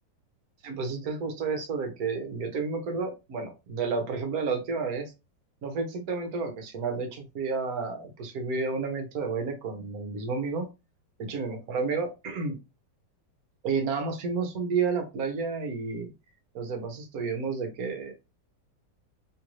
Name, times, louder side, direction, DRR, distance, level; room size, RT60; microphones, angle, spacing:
voice 1, 0.6-5.1 5.6-10.7 11.2-12.6 13.6-16.1 16.5-18.1, right 4 dB, 60° right, 5 dB, 1.1 m, -31 dB
3.1 x 2.5 x 3.0 m, 0.26 s
omnidirectional pair, 2.0 m